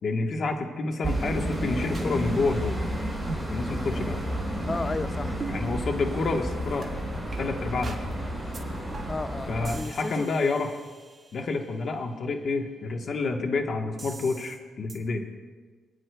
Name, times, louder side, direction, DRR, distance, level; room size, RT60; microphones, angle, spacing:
voice 1, 0.0-2.8 3.5-4.2 5.5-6.9 7.4-8.0 9.5-10.7 11.3-15.2, left 3 dB, 50° left, 1.2 m, -28 dB
sound 1, 1.0-9.8, equal, 5° left, 4.1 m, -31 dB
sound 2, 1.0-1.7 1.9-2.1 2.6-2.9 3.3-3.5 4.0-4.2 4.7-5.0 5.4-5.6 6.1-6.2 6.8-6.9 7.3-7.4 7.8-8.1 8.5-8.6 8.9-9.3 9.6-11.5 14.0-14.6 14.9-15.0, right 3 dB, 35° right, 1.8 m, -39 dB
voice 2, 4.7-5.4 9.1-10.6, left 3 dB, 25° left, 0.4 m, -33 dB
28.5 x 9.6 x 2.3 m
cardioid pair, 90°, 0 cm